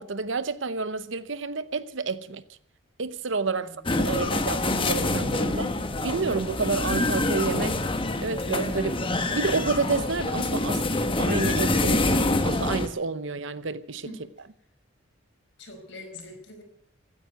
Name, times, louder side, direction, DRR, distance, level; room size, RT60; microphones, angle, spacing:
voice 1, 0.0-2.4 3.0-3.7 4.1-5.7 6.0-7.8 8.2-9.0 9.3-10.8 11.2-14.1, right 4 dB, 70° right, 0.9 m, -29 dB
voice 2, 3.5-3.9 14.0-14.3 15.6-16.6, left 1 dB, 60° left, 4.9 m, -44 dB
sound 1, 3.9-12.9, left 2 dB, 25° left, 1.2 m, -26 dB
16.0 x 9.7 x 9.2 m
head